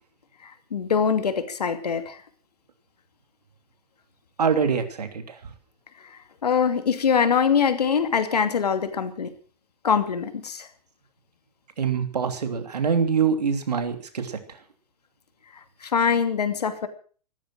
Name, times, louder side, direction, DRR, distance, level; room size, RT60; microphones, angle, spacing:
voice 1, 0.4-2.2 6.4-9.3 9.8-10.7 15.8-16.9, left 6 dB, 80° left, 8 dB, 2.7 m, -23 dB
voice 2, 4.4-5.4 11.8-14.6, right 6 dB, 80° right, 8 dB, 3.0 m, -24 dB
15.5 x 13.5 x 6.1 m, 0.41 s
hypercardioid pair, 110°, 20 cm